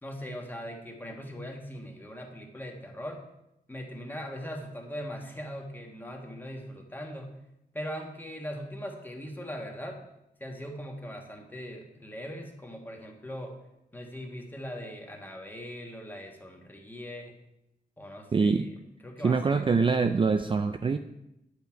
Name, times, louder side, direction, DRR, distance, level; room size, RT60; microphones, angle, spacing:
voice 1, 0.0-3.2 3.7-7.3 7.7-10.0 10.4-13.6 13.9-17.3 18.0-18.7 19.0-19.7, equal, 10° left, 1 dB, 1.5 m, -40 dB
voice 2, 18.3-18.7 19.2-21.0, right 4 dB, 30° right, 8 dB, 0.4 m, -24 dB
10.5 x 8.2 x 4.6 m, 0.87 s
wide cardioid pair, 170°, 17 cm